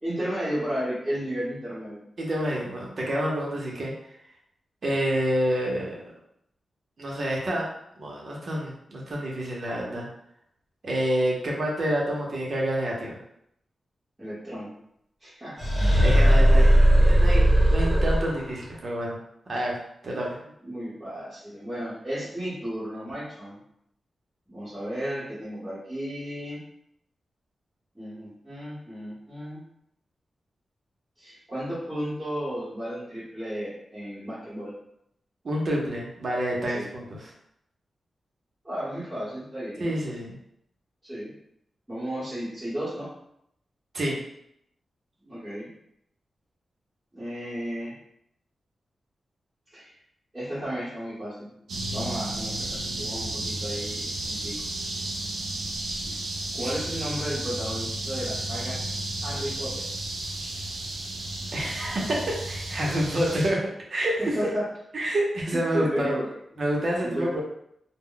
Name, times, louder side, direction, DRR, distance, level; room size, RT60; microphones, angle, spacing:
voice 1, 0.0-2.0 14.2-14.7 15.2-15.6 20.4-23.6 24.5-26.6 27.9-29.6 31.2-34.7 36.7-36.9 38.6-39.9 41.0-41.3 41.9-43.1 45.2-45.7 47.1-47.9 49.7-49.9 50.3-51.5 51.9-54.5 55.9-56.2 56.5-58.8 59.2-59.8 64.3-64.6 65.7-66.3 66.5-67.3, equal, 10° right, -13 dB, 1.0 m, -33 dB
voice 2, 2.2-3.9 4.8-6.0 7.0-7.7 8.0-10.1 10.8-13.1 16.0-19.2 19.5-19.8 20.0-20.3 35.4-37.3 39.8-40.4 43.9-44.2 56.6-56.7 61.5-63.6 63.9-64.4 64.9-66.1 66.6-67.4, right 1 dB, 50° right, -3 dB, 0.7 m, -28 dB
sound 1, 15.6-18.6, equal, 25° left, 0.9 m, -18 dB
sound 2, 51.7-63.5, right 1 dB, 85° right, 0.5 m, -33 dB
2.1 x 2.1 x 3.7 m, 0.75 s
wide cardioid pair, 135°, 0 cm